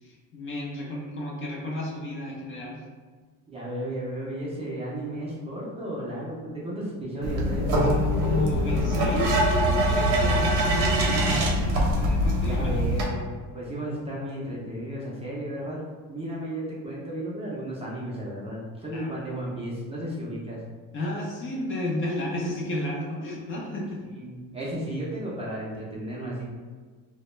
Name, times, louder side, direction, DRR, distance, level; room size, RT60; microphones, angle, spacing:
voice 1, 0.0-2.8 7.7-12.9 18.9-19.1 20.9-24.0, left 1 dB, 35° left, -3 dB, 0.5 m, -32 dB
voice 2, 3.5-7.7 12.5-15.8 16.1-20.6 24.1-26.5, right 1 dB, 15° right, -6 dB, 0.5 m, -34 dB
sound 1, 7.2-13.1, equal, 60° right, 0.7 m, -23 dB
2.2 x 2.1 x 3.0 m, 1.5 s
cardioid pair, 125°, 36 cm